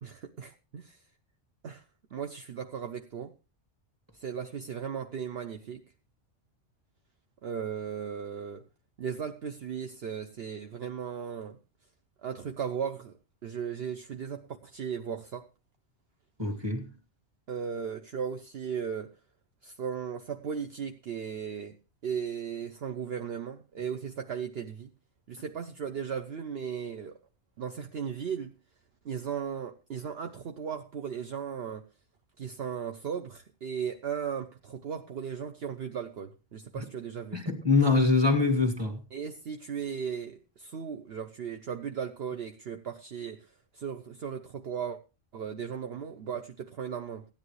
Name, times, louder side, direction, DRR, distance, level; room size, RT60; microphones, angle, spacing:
voice 1, 0.0-1.0 1.6-1.8 2.1-3.3 4.1-5.8 7.4-8.7 9.0-11.6 12.2-15.5 17.5-19.1 19.6-21.8 22.0-24.9 25.3-27.2 27.6-28.5 29.0-31.9 32.4-37.4 39.1-45.0 45.3-47.3, right 7 dB, 60° right, 1.0 m, -36 dB
voice 2, 16.4-16.9 37.3-39.0, left 3 dB, 20° right, 2.0 m, -24 dB
15.5 x 10.5 x 3.2 m
omnidirectional pair, 1.2 m